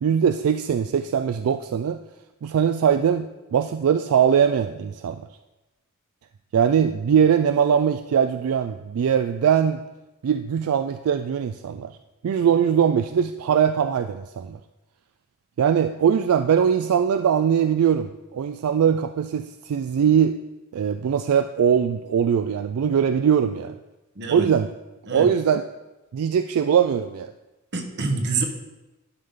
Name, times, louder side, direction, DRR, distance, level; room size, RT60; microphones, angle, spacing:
voice 1, 0.0-2.0 2.4-5.3 6.5-9.8 10.2-12.0 12.2-14.6 15.6-20.4 20.7-23.8 24.3-24.7 25.1-25.6 26.1-27.3, right 8 dB, 80° right, 9 dB, 0.3 m, -21 dB
voice 2, 24.2-24.5 25.1-25.3 27.7-28.4, right 3 dB, 55° right, 4 dB, 1.0 m, -26 dB
11.0 x 5.6 x 3.7 m, 1.0 s
head